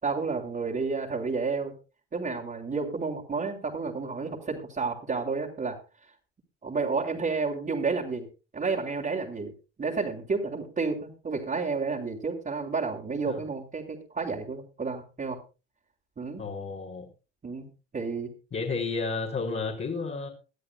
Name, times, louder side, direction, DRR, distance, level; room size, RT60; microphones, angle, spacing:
voice 1, 0.0-1.7 2.1-5.8 6.6-8.3 8.5-9.5 9.8-15.4 16.2-16.4 17.4-17.7 17.9-18.3, right 4 dB, 25° right, -4 dB, 3.5 m, -31 dB
voice 2, 16.4-17.1 18.5-20.3, left 4 dB, 35° left, -2 dB, 4.0 m, -32 dB
22.5 x 12.5 x 2.3 m, 0.32 s
hypercardioid pair, 75°, 32 cm